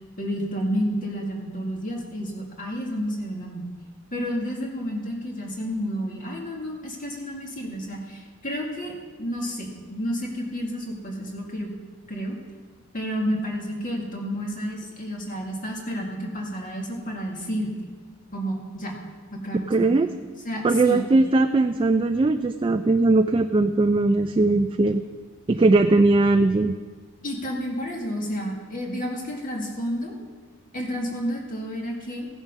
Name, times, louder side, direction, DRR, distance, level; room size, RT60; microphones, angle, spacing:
voice 1, 0.2-3.6 4.1-11.7 12.1-12.4 12.9-17.7 18.3-18.9 19.3-19.9 20.4-21.1 27.2-30.1 30.7-32.3, equal, 40° left, -1 dB, 2.1 m, -30 dB
voice 2, 19.7-20.1 20.6-25.0 25.5-26.8, right 2 dB, 25° right, 7 dB, 0.3 m, -19 dB
16.0 x 7.3 x 5.4 m, 1.5 s
head